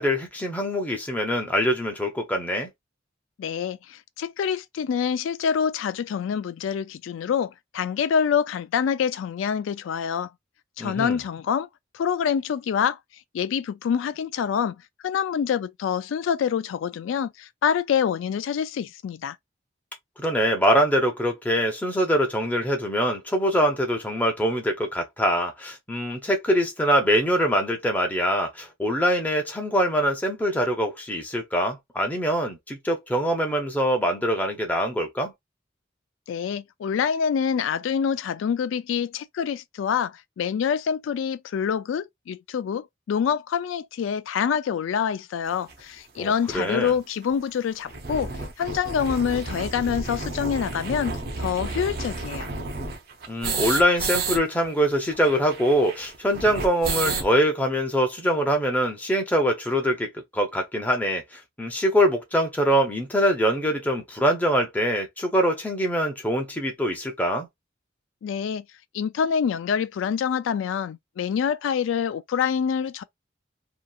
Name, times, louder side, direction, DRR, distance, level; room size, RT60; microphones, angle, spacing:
voice 1, 0.0-2.7 10.8-11.2 20.2-35.3 46.2-46.9 53.3-67.5, equal, 10° left, 0.7 m, -24 dB
voice 2, 3.4-10.3 10.8-11.7 11.9-13.0 13.3-19.4 36.3-52.5 68.2-68.6 68.9-73.0, left 7 dB, 90° left, 0.3 m, -26 dB
sound 1, 45.7-45.8 46.5-46.6 46.8-46.9 47.2-47.3 47.7-54.4 54.6-54.7 54.9-57.3, right 3 dB, 50° right, 0.6 m, -31 dB
2.8 x 2.5 x 2.3 m
head